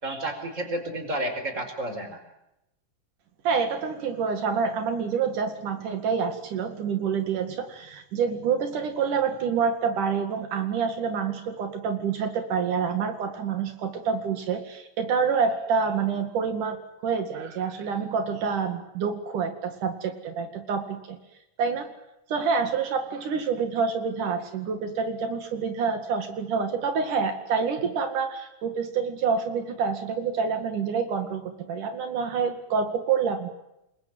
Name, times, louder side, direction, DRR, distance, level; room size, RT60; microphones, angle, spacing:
voice 1, 0.0-2.2, right 1 dB, 20° right, 7 dB, 5.0 m, -31 dB
voice 2, 3.5-21.2 21.6-21.9 22.3-33.5, right 6 dB, 75° right, 7 dB, 3.7 m, -27 dB
27.5 x 22.0 x 9.6 m, 0.87 s
omnidirectional pair, 3.6 m